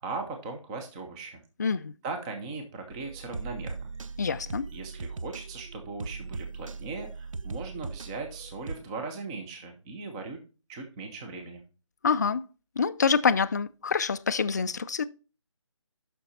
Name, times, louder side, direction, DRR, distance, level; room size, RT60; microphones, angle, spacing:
voice 1, 0.0-1.4 2.0-3.7 4.7-10.4 10.7-11.6, right 3 dB, 10° right, 0.7 m, -38 dB
voice 2, 1.6-1.9 4.2-4.6 12.0-12.4 12.8-15.0, left 5 dB, 35° left, 0.3 m, -26 dB
sound 1, 2.9-8.8, right 4 dB, 85° right, 0.6 m, -39 dB
6.9 x 5.9 x 4.1 m
figure-of-eight pair, 160°, 16 cm